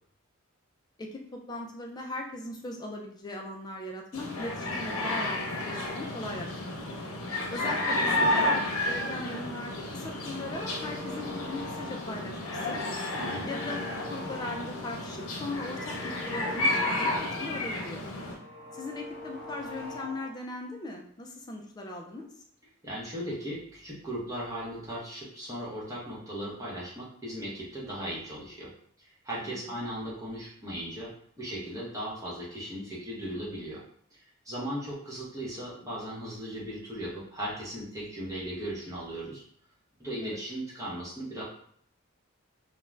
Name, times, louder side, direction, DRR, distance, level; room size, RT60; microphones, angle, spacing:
voice 1, 1.0-6.8 7.5-12.8 13.5-13.8 14.1-18.0 18.7-22.3 29.4-29.8 40.2-40.4, left 2 dB, 20° left, 1 dB, 0.3 m, -39 dB
sound 1, 4.1-18.3, left 1 dB, 90° left, 0.7 m, -31 dB
sound 2, 9.9-12.3 12.6-15.0 15.3-17.7 18.0-20.4, left 1 dB, 55° left, 0.7 m, -44 dB
voice 2, 13.2-13.5 22.8-28.7 29.0-31.1 31.4-33.8 34.1-39.4 40.0-41.4, equal, 15° right, -6 dB, 0.8 m, -37 dB
2.4 x 2.2 x 3.1 m, 0.63 s
head